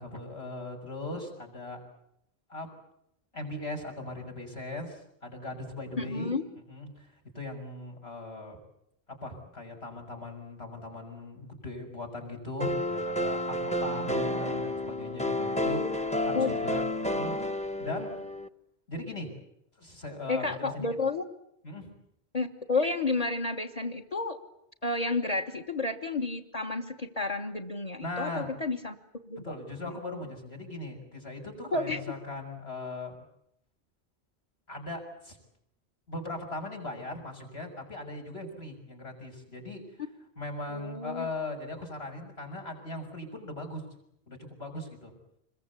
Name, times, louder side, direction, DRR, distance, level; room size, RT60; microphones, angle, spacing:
voice 1, 0.0-1.8 2.5-2.7 3.3-6.4 6.7-8.6 9.1-18.1 18.9-19.3 19.8-20.9 21.6-21.9 28.0-28.5 29.4-33.1 34.7-35.4 36.1-39.8 40.4-43.8 44.3-45.2, left 2 dB, 75° left, 4 dB, 6.6 m, -39 dB
voice 2, 6.0-6.4 14.4-14.6 16.3-16.6 20.3-21.2 22.3-24.4 24.8-28.9 29.3-29.4 30.1-30.2 31.7-32.0 40.7-41.3, left 3 dB, 35° left, 8 dB, 1.5 m, -31 dB
sound 1, 12.6-18.5, left 1 dB, 5° left, 0.9 m, -30 dB
26.5 x 22.5 x 8.3 m, 0.76 s
omnidirectional pair, 1.1 m